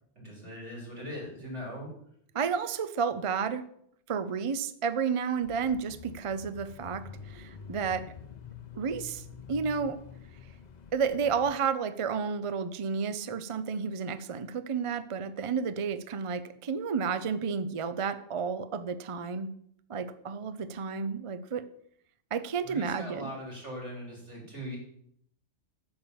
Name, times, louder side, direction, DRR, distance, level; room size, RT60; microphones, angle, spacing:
voice 1, 0.2-1.9 22.6-24.8, equal, 75° right, -3 dB, 4.1 m, -40 dB
voice 2, 2.3-3.6 4.1-8.0 8.7-10.0 10.9-19.5 19.9-21.6 22.3-23.3, right 6 dB, 40° right, 12 dB, 0.5 m, -31 dB
Bicycle / Mechanisms, 5.4-11.6, left 7 dB, 45° left, 0.7 m, -47 dB
8.9 x 7.1 x 7.0 m, 0.69 s
omnidirectional pair, 1.2 m